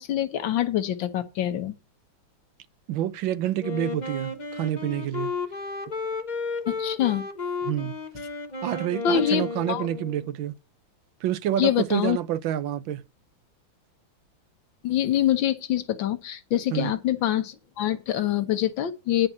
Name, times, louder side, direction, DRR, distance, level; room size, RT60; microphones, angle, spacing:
voice 1, 0.0-1.7 6.7-7.3 9.0-9.9 11.6-12.2 14.8-19.3, left 11 dB, 80° left, 1.7 m, -25 dB
voice 2, 2.9-5.3 7.6-8.0 8.6-10.5 11.2-13.0 16.7-16.9, right 12 dB, 85° right, 1.5 m, -28 dB
Wind instrument woodwind instrument, 3.6-10.3, left 4 dB, 30° left, 1.0 m, -33 dB
10.5 x 5.2 x 7.1 m
omnidirectional pair, 2.1 m